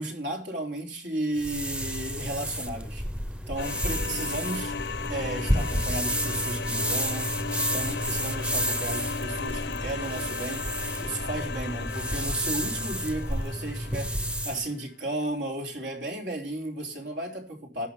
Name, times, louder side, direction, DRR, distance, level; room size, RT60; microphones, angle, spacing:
voice 1, 0.0-3.1 3.5-17.9, right 1 dB, 85° right, 3.6 m, -34 dB
sound 1, 1.4-14.7, equal, 5° right, 0.7 m, -31 dB
sound 2, 3.6-14.3, left 5 dB, 75° left, 0.7 m, -36 dB
11.5 x 8.9 x 5.9 m
head